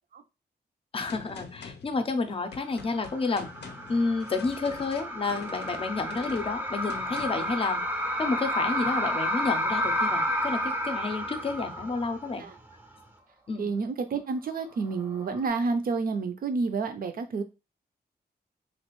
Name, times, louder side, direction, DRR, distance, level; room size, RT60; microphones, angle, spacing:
voice 1, 0.9-3.5 3.9-7.8 8.2-12.5 13.5-13.7, left 3 dB, 35° left, 8 dB, 0.5 m, -30 dB
Gunshot gunfire, 1.1-7.6, left 5 dB, 80° left, 0.5 m, -46 dB
sound 1, 2.8-12.4 12.7-12.8 14.9-15.5, equal, 10° right, 0.5 m, -31 dB
voice 2, 13.6-17.4, right 4 dB, 60° right, 7 dB, 0.5 m, -29 dB
3.1 x 2.4 x 3.0 m, 0.27 s
wide cardioid pair, 125°, 17 cm